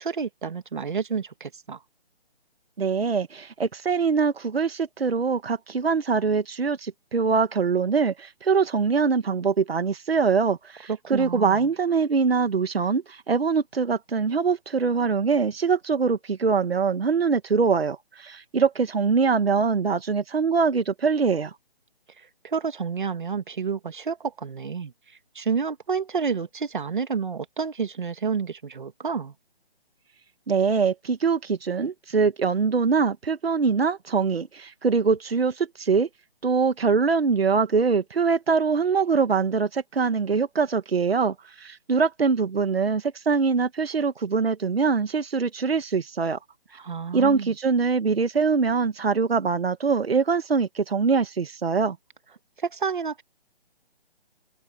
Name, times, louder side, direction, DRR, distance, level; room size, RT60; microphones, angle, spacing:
voice 1, 0.0-1.8 11.0-11.6 22.4-24.9 25.3-29.3 46.8-47.5 52.6-53.2, right 5 dB, 50° right, 2.4 m, -29 dB
voice 2, 2.8-21.5 30.5-36.1 36.4-46.4 47.1-52.0, right 5 dB, 75° right, 1.7 m, -23 dB
hypercardioid pair, 175°, 31 cm